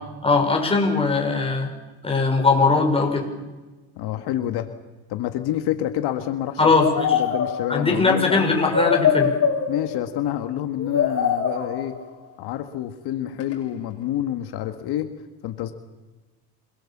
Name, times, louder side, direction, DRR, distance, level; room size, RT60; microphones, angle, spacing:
voice 1, 0.2-1.7 2.0-3.3 6.6-7.2 7.7-9.3, left 3 dB, 15° left, 1 dB, 5.9 m, -20 dB
voice 2, 4.0-4.7 5.1-6.7 7.1-8.5 9.7-12.0 12.4-15.1 15.4-15.7, left 12 dB, 70° left, 8 dB, 1.7 m, -28 dB
sound 1, 6.8-7.9 8.5-10.2 10.8-12.1 13.4-13.5, left 7 dB, 35° left, 6.5 m, -23 dB
27.5 x 21.5 x 7.4 m, 1.2 s
cardioid pair, 120°, 40 cm